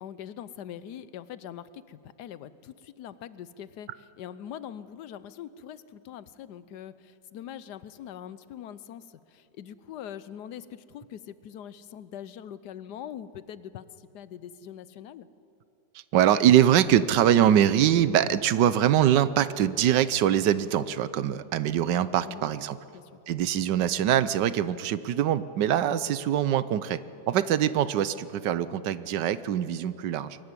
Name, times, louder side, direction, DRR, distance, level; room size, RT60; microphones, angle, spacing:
voice 1, 0.0-3.9 4.2-13.9 14.1-15.3 22.3-22.5 22.9-23.0, left 10 dB, 75° left, 16 dB, 1.3 m, -42 dB
voice 2, 16.1-22.8 23.3-27.0 27.3-30.4, right 10 dB, 85° right, 15 dB, 1.4 m, -23 dB
22.5 x 14.0 x 9.8 m, 2.8 s
omnidirectional pair, 1.8 m